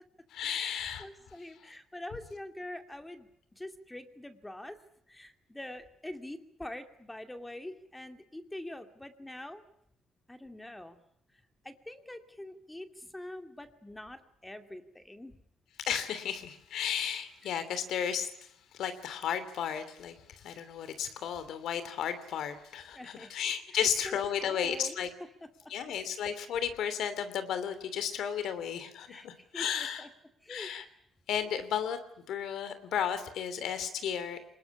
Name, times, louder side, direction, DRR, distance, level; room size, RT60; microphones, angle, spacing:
voice 1, 0.3-1.0 15.8-18.3 18.8-25.1 25.7-30.1 30.5-30.8 31.3-32.0 32.3-34.4, left 8 dB, 80° left, 11 dB, 2.9 m, -33 dB
voice 2, 1.0-3.3 3.6-4.8 5.1-9.6 10.3-11.0 11.6-15.4 22.9-23.3 23.7-24.1 24.4-25.0 25.4-25.5 29.1-30.1 30.4-30.7, left 1 dB, 10° left, 7 dB, 2.4 m, -44 dB
24.0 x 20.5 x 9.9 m, 0.75 s
cardioid pair, 90°, 0 cm